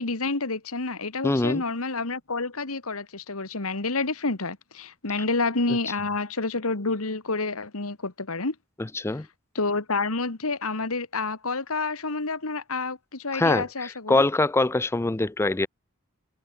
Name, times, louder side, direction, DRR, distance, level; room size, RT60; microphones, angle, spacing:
voice 1, 0.0-8.6 9.6-14.2, left 3 dB, 85° left, 2.1 m, -29 dB
voice 2, 1.2-1.6 8.8-9.3 13.3-15.7, left 2 dB, 10° left, 0.4 m, -24 dB
head